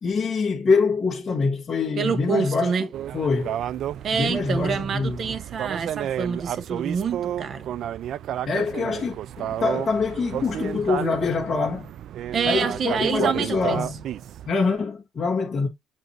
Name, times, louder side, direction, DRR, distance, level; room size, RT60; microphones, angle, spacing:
voice 1, 0.0-2.9 3.1-3.6 4.1-5.3 8.5-11.9 12.4-14.1 14.5-15.7, left 4 dB, 30° left, 1.7 m, -25 dB
voice 2, 2.0-2.9 4.0-7.7 12.3-13.8, right 6 dB, 40° right, 0.9 m, -27 dB
sound 1, 2.9-14.5, right 10 dB, 55° right, 0.3 m, -32 dB
8.0 x 2.7 x 4.4 m
cardioid pair, 140°, 0 cm